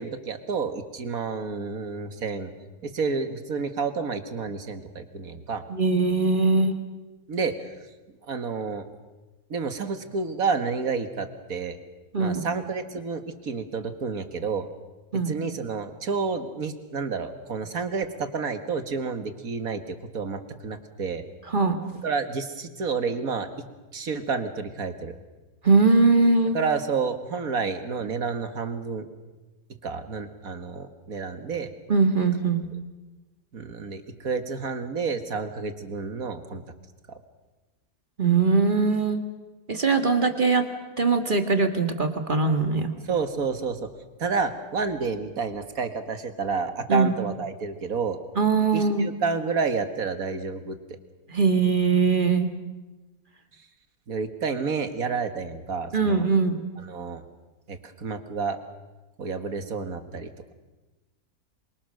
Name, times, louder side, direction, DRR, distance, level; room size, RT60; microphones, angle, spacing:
voice 1, 0.0-2.5 2.8-5.6 7.3-7.7 8.2-8.9 9.5-11.8 12.2-14.7 15.3-21.2 22.0-23.5 23.9-25.2 26.5-29.1 29.8-31.7 33.5-36.6 37.1-37.2 43.1-43.9 44.2-48.2 48.7-50.8 54.1-56.2 56.8-57.2 57.7-58.6 59.2-60.5, right 5 dB, 70° right, 8 dB, 2.2 m, -30 dB
voice 2, 5.7-6.8 12.1-12.5 15.1-15.3 21.5-21.9 25.6-26.6 31.9-32.7 38.2-39.2 39.7-40.6 41.0-42.9 46.9-47.1 48.4-49.1 51.3-52.5 55.9-56.6, right 4 dB, 35° right, 6 dB, 2.0 m, -21 dB
27.0 x 24.0 x 6.5 m, 1.1 s
omnidirectional pair, 1.6 m